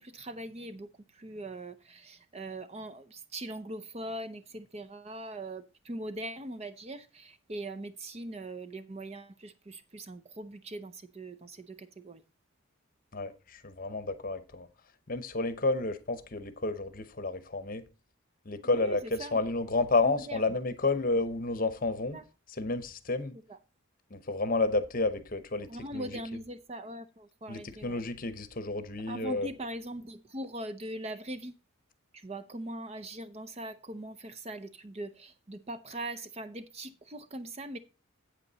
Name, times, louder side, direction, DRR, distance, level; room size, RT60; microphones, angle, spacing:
voice 1, 0.2-0.9 1.2-1.7 2.1-3.0 3.3-7.0 7.5-9.5 9.9-11.5 12.0-12.2 19.2-19.3 25.7-27.0 27.4-28.0 29.1-31.5 32.2-35.1 35.5-37.8, right 1 dB, 30° right, 0.6 m, -40 dB
voice 2, 13.1-14.7 15.1-17.8 18.5-22.2 22.5-23.4 24.1-26.4 27.5-29.5, left 3 dB, 40° left, 0.8 m, -31 dB
8.3 x 8.2 x 4.0 m
head